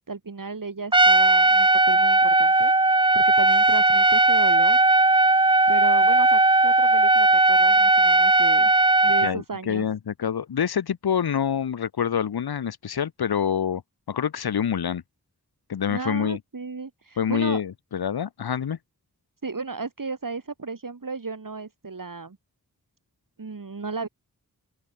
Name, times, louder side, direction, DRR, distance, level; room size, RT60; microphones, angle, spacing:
voice 1, 0.0-2.7 3.1-4.8 5.7-8.7 9.0-9.9 15.9-17.6 19.4-22.4 23.4-24.1, right 4 dB, 60° right, 2.4 m, -34 dB
Trumpet, 0.9-9.3, right 2 dB, 15° right, 0.5 m, -18 dB
voice 2, 9.2-13.8 14.1-15.0 15.7-16.4 17.2-18.8, left 8 dB, 80° left, 0.8 m, -26 dB
open air
wide cardioid pair, 50°, 37 cm